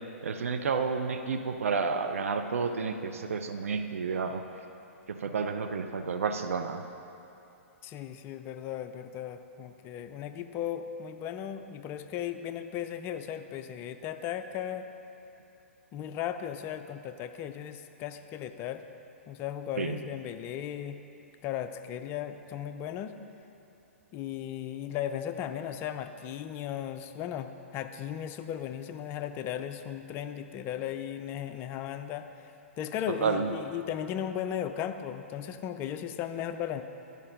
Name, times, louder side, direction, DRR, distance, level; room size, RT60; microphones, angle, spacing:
voice 1, 0.2-4.4 5.1-6.8 19.8-19.9 33.2-33.5, right 5 dB, 75° right, 6 dB, 0.5 m, -30 dB
voice 2, 7.8-14.9 15.9-18.8 19.3-21.0 21.4-23.2 24.1-32.3 32.8-36.8, left 10 dB, 30° left, 9 dB, 0.4 m, -36 dB
10.5 x 5.3 x 5.2 m, 2.9 s
hypercardioid pair, 120°, 8 cm